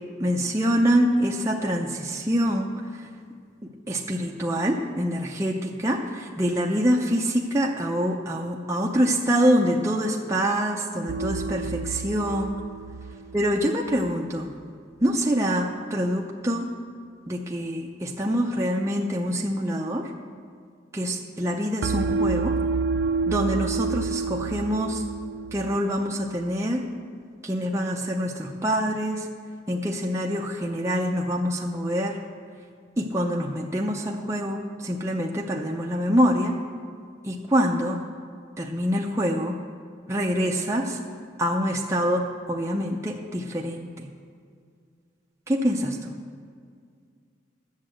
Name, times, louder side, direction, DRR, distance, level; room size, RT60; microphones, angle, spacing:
voice 1, 0.2-3.1 3.6-12.6 13.3-14.5 15.0-16.7 17.3-20.1 20.9-22.5 23.3-25.0 25.5-26.8 27.4-29.3 29.7-32.2 33.0-36.6 37.2-38.0 38.6-39.6 40.1-41.0 41.4-44.1 45.5-46.1, equal, 15° right, -1 dB, 0.6 m, -25 dB
sound 1, 11.1-14.2 21.8-25.8, right 4 dB, 70° right, 0.5 m, -29 dB
9.8 x 7.3 x 7.6 m, 2.1 s
head